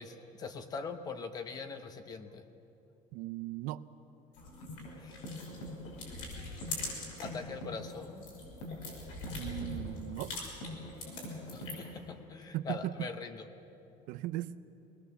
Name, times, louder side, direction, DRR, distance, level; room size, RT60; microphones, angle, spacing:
voice 1, 0.0-2.4 5.0-5.3 6.2-6.6 7.2-8.4 11.5-13.5, left 5 dB, 30° left, 8 dB, 0.8 m, -42 dB
voice 2, 3.1-3.8 9.3-10.3 12.5-13.1 14.1-14.5, right 15 dB, 75° right, 13 dB, 0.6 m, -37 dB
sound 1, 4.3-7.4 7.8-12.0, left 2 dB, 75° left, 6.0 m, -43 dB
sound 2, 4.4-12.4, left 1 dB, 90° left, 4.2 m, -45 dB
23.0 x 19.5 x 7.0 m, 2.9 s
cardioid pair, 180°, 14 cm